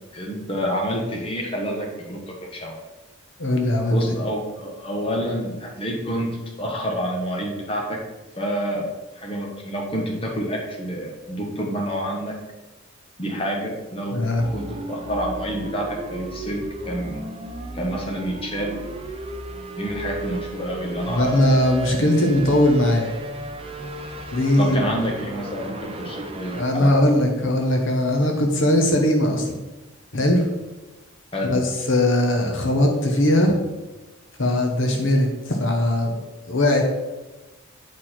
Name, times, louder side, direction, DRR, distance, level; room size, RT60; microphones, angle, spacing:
voice 1, 0.1-2.8 3.9-6.3 6.6-8.0 8.4-8.9 9.2-12.3 13.2-14.2 14.5-16.6 16.9-17.2 17.7-18.8 19.8-21.3 24.6-27.1 31.3-31.6, equal, 25° left, -1 dB, 1.1 m, -28 dB
voice 2, 3.4-4.0 14.1-14.5 21.1-23.1 24.3-24.9 26.5-29.6 30.1-30.5 31.5-33.5 34.4-36.2 36.5-36.8, left 1 dB, 55° left, 2 dB, 1.0 m, -20 dB
sound 1, 14.4-26.6, right 1 dB, 25° right, 0.6 m, -35 dB
8.4 x 4.6 x 4.3 m, 1.1 s
head